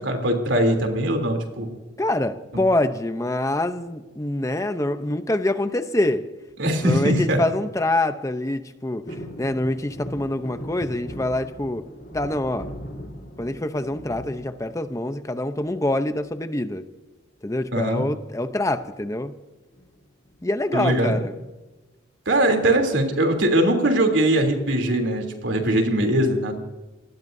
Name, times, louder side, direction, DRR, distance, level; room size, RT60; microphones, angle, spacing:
voice 1, 0.0-1.8 6.6-7.4 17.7-18.0 20.7-21.2 22.2-26.5, right 1 dB, 75° right, 3 dB, 3.2 m, -21 dB
voice 2, 2.0-6.3 6.8-9.1 9.4-11.8 12.1-12.7 13.4-16.8 17.4-19.3 20.4-21.3, left 1 dB, 15° left, 9 dB, 0.7 m, -25 dB
sound 1, 9.0-15.2 15.7-16.3 17.5-18.0 18.2-18.3 18.6-18.9 19.7-20.7 21.1-21.2, equal, 50° left, 3.0 m, -39 dB
27.0 x 19.5 x 2.7 m, 1.1 s
head